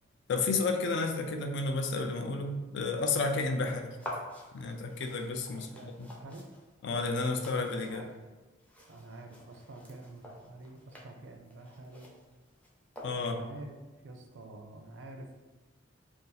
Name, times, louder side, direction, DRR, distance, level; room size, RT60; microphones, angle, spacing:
voice 1, 0.3-4.0 4.5-6.1 6.8-8.0 13.0-13.4, left 3 dB, 65° left, 4 dB, 0.4 m, -31 dB
sound 1, 4.0-13.5, left 1 dB, 5° left, 0.5 m, -49 dB
voice 2, 5.5-6.5 7.9-8.1 8.9-12.1 13.2-13.8 14.0-15.3, right 2 dB, 70° right, 4 dB, 0.4 m, -48 dB
2.6 x 2.4 x 3.9 m, 1.2 s
head